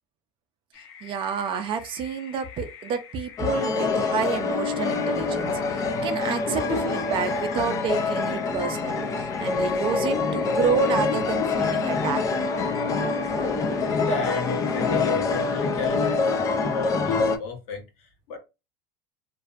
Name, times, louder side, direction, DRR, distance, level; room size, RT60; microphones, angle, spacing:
sound 1, 0.7-15.4, left 8 dB, 90° left, 0.7 m, -44 dB
voice 1, 1.0-12.5, right 6 dB, 40° right, 0.4 m, -29 dB
sound 2, 3.4-17.4, left 4 dB, 25° left, 0.3 m, -25 dB
voice 2, 13.9-18.4, left 3 dB, 60° left, 1.0 m, -34 dB
2.5 x 2.0 x 2.4 m
supercardioid pair, 115°, 13 cm